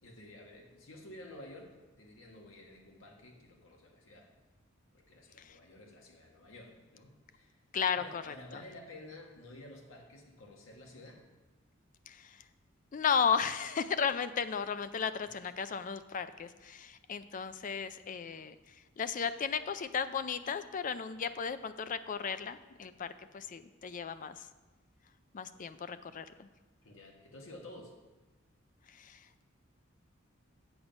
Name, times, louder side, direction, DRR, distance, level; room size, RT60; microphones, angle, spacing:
voice 1, 0.0-4.3 4.9-11.2 26.8-28.0, left 1 dB, 75° left, 1 dB, 1.6 m, -52 dB
voice 2, 7.7-8.6 12.1-12.4 12.9-18.6 19.0-24.5 25.3-26.5 28.9-29.4, left 6 dB, 40° left, 12 dB, 0.4 m, -35 dB
8.0 x 7.4 x 5.2 m, 1.2 s
head